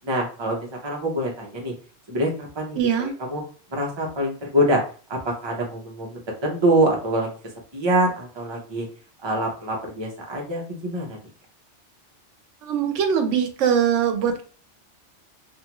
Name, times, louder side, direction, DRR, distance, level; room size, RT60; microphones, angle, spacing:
voice 1, 0.0-1.7 2.1-3.4 3.7-4.8 5.1-7.3 7.7-8.9 9.2-11.2, right 1 dB, 30° right, 0 dB, 0.6 m, -25 dB
voice 2, 2.8-3.1 12.6-14.4, right 8 dB, 85° right, 6 dB, 0.9 m, -22 dB
2.7 x 2.4 x 2.9 m, 0.39 s
omnidirectional pair, 1.2 m